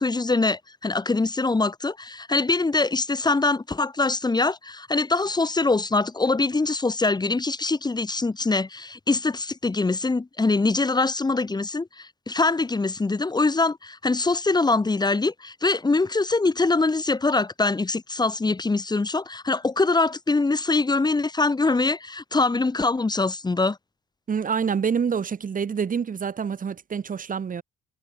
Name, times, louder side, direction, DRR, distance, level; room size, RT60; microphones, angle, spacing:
voice 1, 0.0-23.8, left 3 dB, 20° left, 1.9 m, -23 dB
voice 2, 24.3-27.6, right 6 dB, 45° right, 2.3 m, -27 dB
cardioid pair, 90°, 20 cm